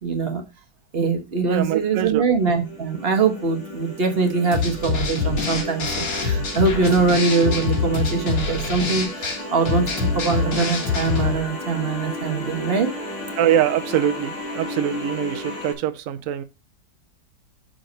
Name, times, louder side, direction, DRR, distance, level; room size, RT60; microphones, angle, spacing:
voice 1, 0.0-0.4 0.9-12.9, right 4 dB, 35° right, 1.2 m, -22 dB
voice 2, 1.4-2.2 13.4-16.4, right 10 dB, 60° right, 0.9 m, -23 dB
sound 1, 2.4-15.7, left 1 dB, 85° left, 2.9 m, -33 dB
sound 2, 4.5-11.4, left 5 dB, 65° left, 2.4 m, -25 dB
6.4 x 4.6 x 5.2 m
omnidirectional pair, 2.1 m